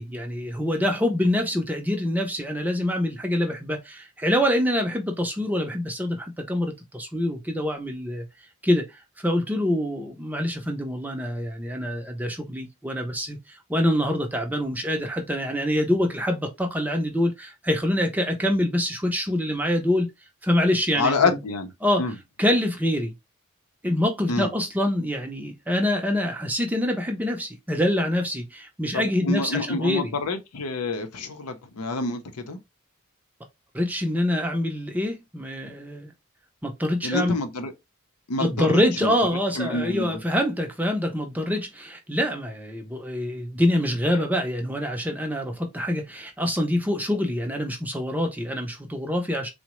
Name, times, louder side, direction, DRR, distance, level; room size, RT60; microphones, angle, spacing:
voice 1, 0.0-8.3 8.6-8.8 9.2-20.1 20.4-21.4 21.8-22.0 22.4-23.1 23.8-30.1 33.7-36.1 36.6-37.4 38.4-49.5, left 1 dB, 5° right, 0.4 m, -25 dB
voice 2, 20.9-21.7 22.0-22.1 24.3-24.5 28.9-32.6 37.0-37.7 38.3-39.1 39.6-40.2, left 3 dB, 90° left, 0.6 m, -27 dB
3.7 x 2.1 x 3.0 m
head